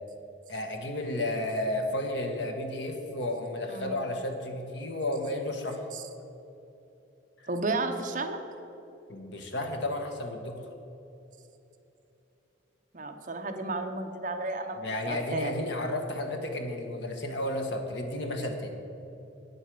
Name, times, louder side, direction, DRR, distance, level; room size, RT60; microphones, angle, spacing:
voice 1, 0.5-5.8 7.4-7.5 9.1-10.6 14.8-18.8, left 1 dB, 65° left, 4 dB, 1.4 m, -32 dB
voice 2, 3.7-4.1 5.9-6.0 7.5-8.4 12.9-15.5, right 2 dB, 40° right, 6 dB, 0.8 m, -33 dB
9.4 x 8.1 x 7.6 m, 2.9 s
head